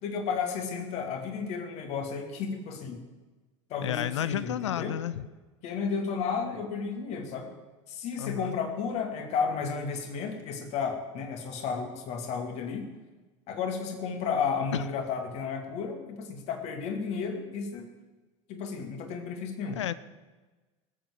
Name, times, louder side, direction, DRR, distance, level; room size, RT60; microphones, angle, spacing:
voice 1, 0.0-3.0 3.7-5.0 5.6-7.5 7.9-12.8 13.5-17.9 18.5-19.8, left 5 dB, 40° left, 5 dB, 2.3 m, -33 dB
voice 2, 3.8-5.3 8.2-8.6 14.7-14.8 19.8-19.9, left 11 dB, 65° left, 16 dB, 0.6 m, -31 dB
18.0 x 8.0 x 7.4 m, 1.2 s
figure-of-eight pair, 80°, 16 cm